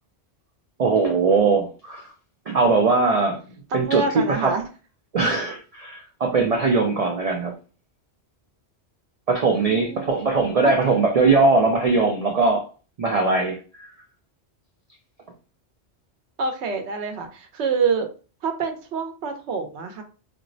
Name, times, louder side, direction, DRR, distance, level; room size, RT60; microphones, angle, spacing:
voice 1, 0.8-2.1 2.5-3.4 3.7-4.0 4.4-4.6 5.1-7.5 9.3-12.7 13.0-13.9, right 4 dB, 55° right, 0.4 m, -20 dB
voice 2, 3.7-4.6 9.5-10.1 10.6-10.7 16.4-18.1 18.4-20.0, right 4 dB, 85° right, 0.9 m, -26 dB
4.2 x 2.0 x 2.5 m
omnidirectional pair, 1.1 m